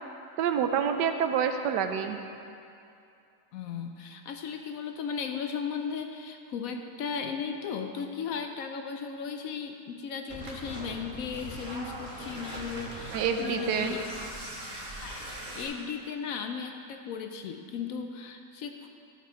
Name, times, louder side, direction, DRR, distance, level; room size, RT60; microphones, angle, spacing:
voice 1, 0.4-2.2 13.1-14.0, right 7 dB, 80° right, 7 dB, 1.2 m, -27 dB
voice 2, 3.5-14.0 15.0-18.9, left 6 dB, 70° left, 5 dB, 0.8 m, -36 dB
sound 1, 10.3-15.7, right 1 dB, 30° right, 1.6 m, -40 dB
14.5 x 5.1 x 4.3 m, 2.6 s
omnidirectional pair, 1.9 m